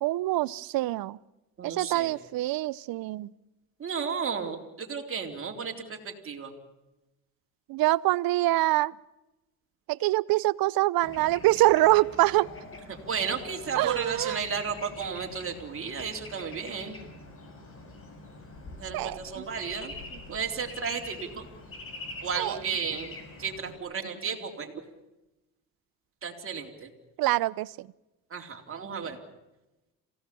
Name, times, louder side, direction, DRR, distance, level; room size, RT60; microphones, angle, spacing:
voice 1, 0.0-1.2 1.6-3.3 7.7-8.9 9.9-12.5 13.8-14.4 18.9-19.4 22.3-22.6 27.2-27.9, right 17 dB, 70° right, 21 dB, 0.8 m, -25 dB
voice 2, 1.6-2.1 3.8-6.6 12.9-17.0 18.8-21.5 22.2-23.1 23.4-24.7 26.2-26.9 28.3-29.2, right 6 dB, 35° right, 2 dB, 3.9 m, -33 dB
Bird / Traffic noise roadway noise, 11.0-23.8, left 2 dB, 35° left, 6.2 m, -45 dB
28.0 x 17.0 x 7.0 m, 0.99 s
cardioid pair, 115°, 36 cm